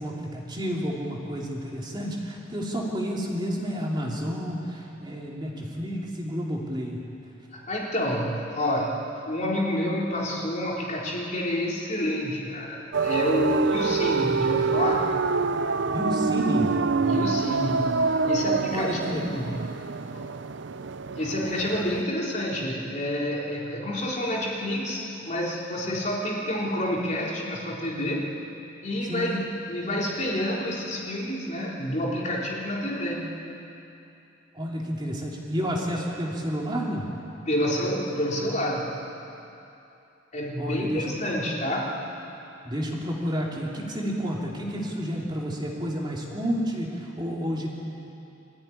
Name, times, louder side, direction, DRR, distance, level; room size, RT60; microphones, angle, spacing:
voice 1, 0.0-7.0 15.9-16.7 18.7-19.3 29.1-29.4 34.5-37.1 40.6-41.2 42.6-47.7, equal, 25° right, -3 dB, 2.9 m, -30 dB
voice 2, 7.5-15.1 17.1-19.8 20.1-20.3 21.2-28.3 28.8-29.4 29.7-33.4 37.5-38.9 40.3-42.0, left 1 dB, 40° left, -3 dB, 3.6 m, -28 dB
sound 1, 12.9-22.0, right 4 dB, 65° right, 0.6 m, -26 dB
24.5 x 15.0 x 9.9 m, 2.8 s
head